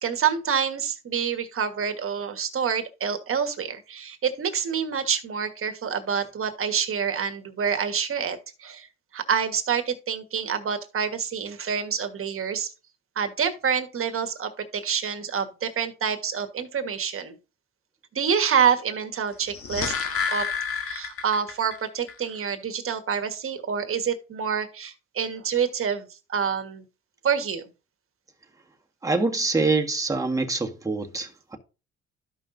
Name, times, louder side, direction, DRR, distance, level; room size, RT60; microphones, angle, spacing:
voice 1, 0.0-8.9 9.1-12.7 13.1-17.4 18.1-19.9 20.3-20.5 20.8-26.8 27.2-27.7, right 7 dB, 50° right, 1.5 m, -27 dB
sound 1, 19.3-21.8 22.1-22.2, left 6 dB, 50° left, 1.4 m, -29 dB
voice 2, 29.0-31.6, right 3 dB, 10° right, 1.5 m, -25 dB
13.0 x 5.5 x 2.6 m
supercardioid pair, 75°, 29 cm